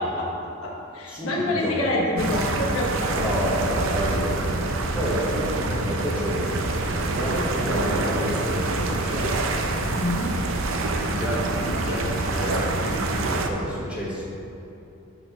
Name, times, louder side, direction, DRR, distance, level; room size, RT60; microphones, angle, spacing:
voice 1, 0.0-3.2 9.9-10.5, left 1 dB, 75° left, -3 dB, 1.2 m, -27 dB
voice 2, 1.1-1.8 3.1-4.6 4.9-9.3 11.1-14.2, equal, 5° right, -7 dB, 1.4 m, -29 dB
sound 1, 2.2-13.5, right 2 dB, 65° right, 0.6 m, -26 dB
5.8 x 4.3 x 6.0 m, 3.0 s
head